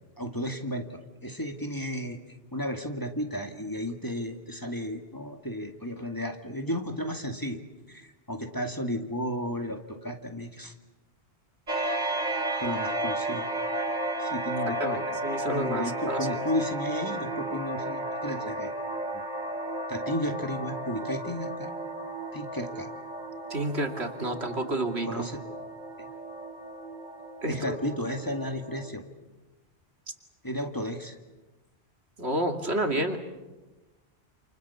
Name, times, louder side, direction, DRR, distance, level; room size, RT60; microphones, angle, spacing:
voice 1, 0.2-7.6 7.9-10.7 12.6-13.5 14.2-15.0 15.5-18.7 19.1-19.2 19.9-21.7 22.3-22.9 25.1-25.4 26.0-26.1 27.5-29.0 30.4-31.2, equal, 20° left, 4 dB, 2.1 m, -33 dB
sound 1, 11.7-28.9, right 1 dB, 45° right, 2.6 m, -33 dB
voice 2, 14.8-16.2 23.5-25.2 27.4-27.8 32.2-33.2, right 1 dB, 75° right, 5 dB, 2.8 m, -30 dB
29.0 x 28.5 x 7.1 m, 1.1 s
omnidirectional pair, 1.1 m